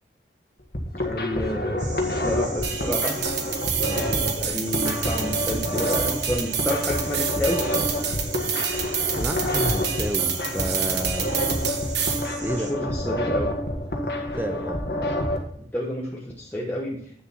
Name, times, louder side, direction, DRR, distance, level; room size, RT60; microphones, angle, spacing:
sound 1, 0.6-15.4, left 1 dB, 60° left, 1.7 m, -28 dB
voice 1, 0.9-3.2 4.0-7.7 12.5-13.6 15.5-17.2, left 1 dB, 10° left, -4 dB, 1.2 m, -30 dB
sound 2, 1.8-12.7, right 4 dB, 45° right, 2.1 m, -40 dB
sound 3, 2.6-12.3, right 8 dB, 75° right, 1.4 m, -28 dB
voice 2, 9.1-11.3 12.2-12.9 14.2-14.8, equal, 10° right, 9 dB, 0.6 m, -31 dB
9.4 x 6.7 x 4.1 m, 0.65 s
head